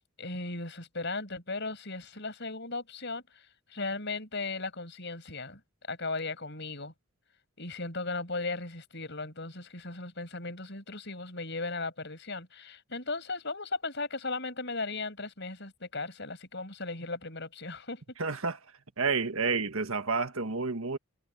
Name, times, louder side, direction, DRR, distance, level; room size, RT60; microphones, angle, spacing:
voice 1, 0.2-5.6 5.9-6.9 7.6-18.0, left 3 dB, 55° left, 6.7 m, -37 dB
voice 2, 18.2-18.6 19.0-21.0, right 4 dB, 75° right, 1.7 m, -30 dB
head